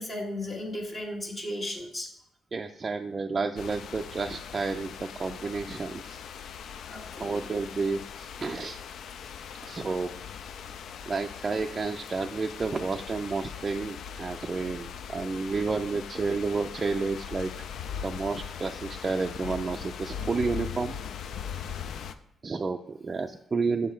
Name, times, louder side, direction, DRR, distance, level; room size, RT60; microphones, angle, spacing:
voice 1, 0.0-2.1 6.9-7.5, left 1 dB, 45° left, -4 dB, 1.4 m, -35 dB
voice 2, 2.5-4.9 5.2-6.2 7.2-8.8 9.6-10.1 11.1-17.5 18.0-21.0 22.4-23.9, right 4 dB, 35° right, 3 dB, 0.4 m, -31 dB
sound 1, 3.6-22.1, left 7 dB, 70° left, 0.4 m, -40 dB
7.2 x 5.1 x 4.4 m, 0.76 s
cardioid pair, 90°, 0 cm